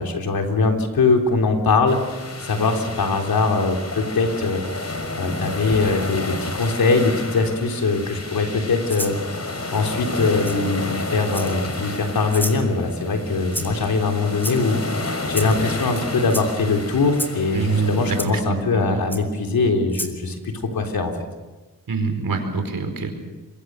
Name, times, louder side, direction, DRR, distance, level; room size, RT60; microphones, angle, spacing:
voice 1, 0.0-4.6 5.1-9.4 9.7-14.8 15.3-21.1, left 3 dB, 85° left, 3 dB, 3.6 m, -22 dB
sound 1, 1.9-18.2, left 2 dB, 45° left, 4.5 m, -31 dB
Rattle (instrument), 8.9-9.2 10.4-10.6 11.3-11.7 12.3-12.6 13.5-13.9 14.4-14.8 15.3-15.6 16.3-16.5 17.1-17.4 18.2-18.3 19.1-19.2 19.9-20.2, equal, 5° left, 4.4 m, -30 dB
voice 2, 17.5-19.0 21.9-23.1, right 4 dB, 75° right, 6 dB, 4.8 m, -25 dB
26.5 x 23.0 x 6.4 m, 1.2 s
cardioid pair, 45°, 35 cm